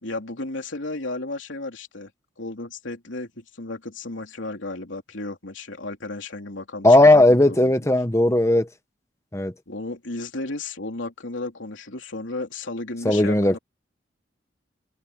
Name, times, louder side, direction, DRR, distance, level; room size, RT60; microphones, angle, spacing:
voice 1, 0.0-2.1 2.4-7.9 9.7-13.6, left 2 dB, 85° left, 3.3 m, -34 dB
voice 2, 6.8-8.7 9.3-9.5 13.0-13.6, left 1 dB, 15° left, 1.3 m, -16 dB
head